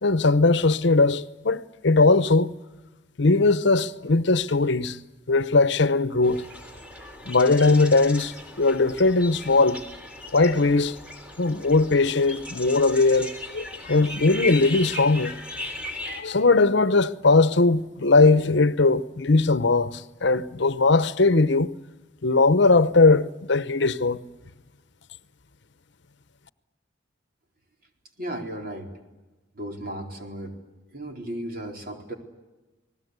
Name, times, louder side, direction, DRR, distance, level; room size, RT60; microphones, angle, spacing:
voice 1, 0.0-2.5 3.2-5.0 5.3-6.4 7.3-9.8 10.3-11.0 11.4-15.3 16.1-21.7 22.2-24.2, left 3 dB, 65° left, 0.9 m, -20 dB
sound 1, 6.2-16.2, left 2 dB, 5° right, 3.6 m, -37 dB
voice 2, 28.2-28.9 29.5-30.6 30.9-32.1, right 1 dB, 50° right, 4.2 m, -35 dB
30.0 x 20.0 x 8.1 m
head